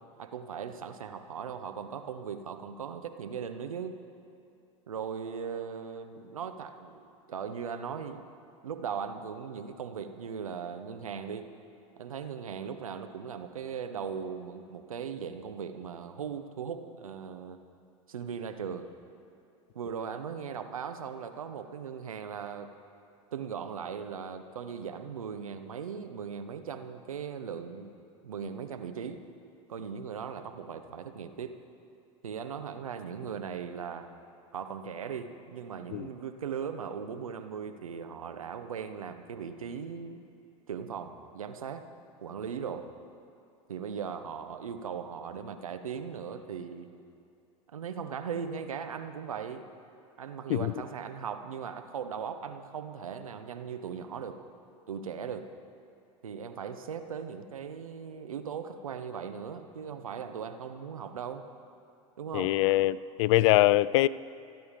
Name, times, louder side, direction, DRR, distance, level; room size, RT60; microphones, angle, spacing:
voice 1, 0.2-3.9 4.9-8.3 8.6-11.5 12.0-17.6 18.1-18.9 19.7-22.7 23.3-27.9 28.2-29.2 29.7-31.5 32.2-34.1 34.5-40.2 40.7-41.8 42.2-42.9 43.7-46.9 47.7-49.7 50.2-54.4 54.9-55.5 56.2-61.5 62.2-62.5, right 7 dB, 85° right, 1.1 m, -38 dB
voice 2, 62.3-64.1, left 17 dB, 60° left, 0.4 m, -23 dB
26.5 x 9.4 x 5.2 m
hypercardioid pair, 85°, 17 cm